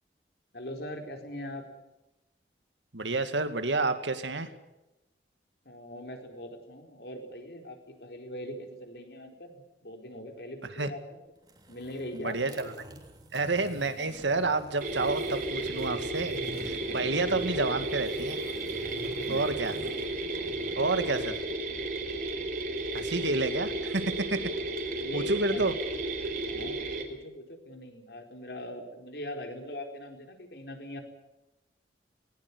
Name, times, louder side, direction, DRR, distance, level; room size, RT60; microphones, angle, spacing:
voice 1, 0.5-1.6 5.6-11.2 11.7-12.4 16.9-17.4 19.2-19.5 21.7-21.8 25.0-25.7 26.4-31.0, left 1 dB, 65° left, 4 dB, 4.5 m, -42 dB
voice 2, 2.9-4.5 10.8-10.9 12.1-13.0 13.3-18.4 19.3-19.7 20.8-21.3 22.9-24.0 24.3-24.4 25.1-25.8, right 3 dB, 90° right, 9 dB, 2.3 m, -29 dB
sound 1, 11.4-21.2, equal, 20° right, 3.2 m, -47 dB
sound 2, 14.8-27.0, right 2 dB, 50° right, 4.1 m, -33 dB
20.0 x 19.0 x 9.8 m, 0.97 s
head